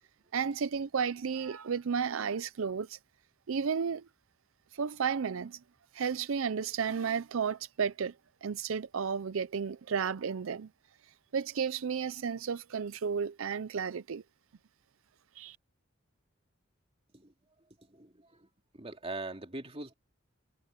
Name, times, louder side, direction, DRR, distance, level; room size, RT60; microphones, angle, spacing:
voice 1, 0.3-3.0 3.5-4.0 4.7-5.6 5.9-8.1 8.4-10.7 11.3-14.2 15.4-15.6, right 6 dB, 75° right, 0.5 m, -33 dB
voice 2, 17.9-18.5 18.7-19.9, right 2 dB, 30° right, 2.6 m, -42 dB
head